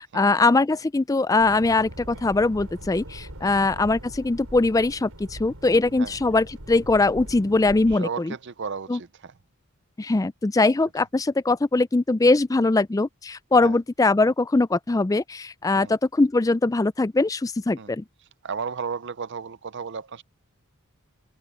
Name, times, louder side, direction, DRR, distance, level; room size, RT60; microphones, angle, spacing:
voice 1, 0.0-8.3 8.9-9.0 10.0-18.0, left 3 dB, 15° left, 0.3 m, -21 dB
sound 1, 1.4-8.0, right 1 dB, 75° right, 5.3 m, -41 dB
voice 2, 7.9-9.3 11.0-11.1 13.6-13.8 15.8-15.9 17.8-17.9 18.4-20.2, right 5 dB, 50° right, 0.6 m, -34 dB
head